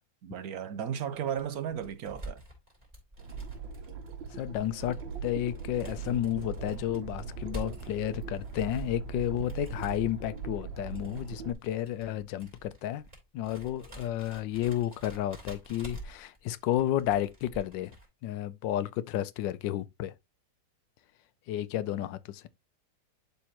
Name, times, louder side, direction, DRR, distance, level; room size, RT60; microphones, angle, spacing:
voice 1, 0.2-2.4, right 9 dB, 60° right, 1.2 m, -35 dB
sound 1, 1.4-18.1, right 1 dB, 20° right, 3.9 m, -47 dB
sound 2, 3.2-11.5, right 5 dB, 90° right, 1.7 m, -40 dB
voice 2, 4.3-5.0 5.2-13.0 13.3-17.9 18.2-20.1 21.5-22.5, left 12 dB, 80° left, 1.3 m, -32 dB
11.5 x 4.1 x 2.9 m
omnidirectional pair, 2.0 m